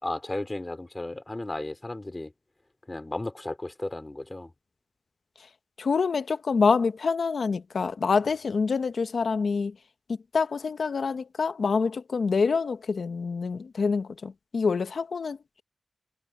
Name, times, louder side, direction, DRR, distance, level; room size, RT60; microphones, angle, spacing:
voice 1, 0.0-2.3 2.9-4.5, left 2 dB, 20° left, 3.2 m, -34 dB
voice 2, 5.8-9.8 10.1-15.6, left 5 dB, 60° left, 1.1 m, -26 dB
wide cardioid pair, 135°, 0 cm